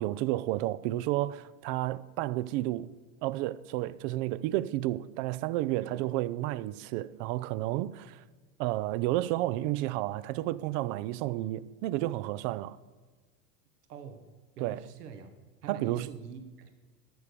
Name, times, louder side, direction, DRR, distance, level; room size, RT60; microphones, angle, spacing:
voice 1, 0.0-2.9 3.2-8.2 8.6-12.8 14.6-14.8 15.7-16.1, right 16 dB, 50° right, 0.5 m, -31 dB
voice 2, 5.8-6.2 13.9-14.3 14.6-15.3 15.6-16.7, right 6 dB, 80° right, 1.3 m, -45 dB
12.5 x 6.8 x 6.8 m
hypercardioid pair, 95°, 46 cm